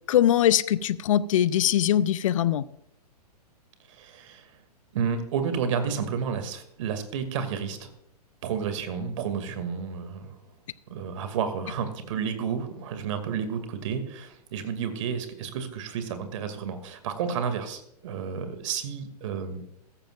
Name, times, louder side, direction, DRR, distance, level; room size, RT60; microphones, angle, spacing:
voice 1, 0.1-2.7, left 11 dB, 55° left, 17 dB, 0.6 m, -22 dB
voice 2, 3.9-4.5 4.9-7.9 8.4-10.4 10.9-19.6, right 7 dB, 50° right, 9 dB, 2.3 m, -31 dB
15.5 x 14.0 x 2.5 m, 0.77 s
figure-of-eight pair, 115°, 21 cm